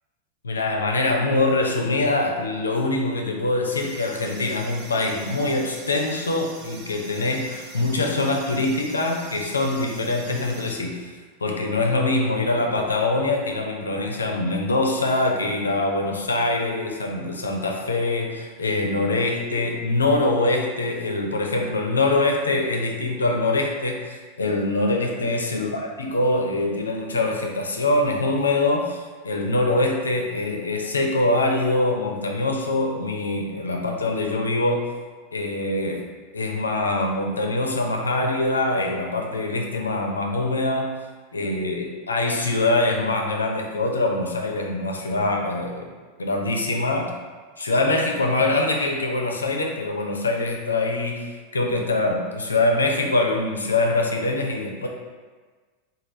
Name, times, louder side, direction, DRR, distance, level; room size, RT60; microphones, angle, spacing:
voice 1, 0.4-11.1 11.4-34.9 35.3-36.1 36.3-41.0 41.3-45.9 46.2-47.1 47.6-54.9, left 2 dB, 85° left, 1 dB, 0.4 m, -24 dB
sound 1, 3.7-10.7, right 4 dB, 50° right, 0.5 m, -44 dB
3.2 x 2.3 x 3.8 m, 1.4 s
figure-of-eight pair, 90°, 0 cm